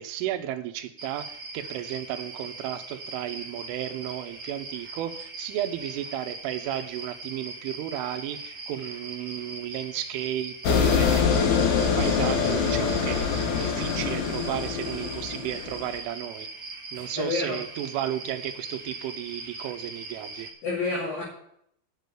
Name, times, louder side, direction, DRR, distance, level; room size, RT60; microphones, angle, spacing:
voice 1, 0.0-16.5 16.9-20.5, right 12 dB, 80° right, 3.3 m, -34 dB
sound 1, 1.0-20.5, right 3 dB, 60° right, 0.9 m, -40 dB
sound 2, 10.6-16.0, left 6 dB, 85° left, 1.7 m, -24 dB
voice 2, 16.9-17.6 20.6-21.2, left 3 dB, 50° left, 3.8 m, -29 dB
8.4 x 7.3 x 8.1 m
omnidirectional pair, 5.8 m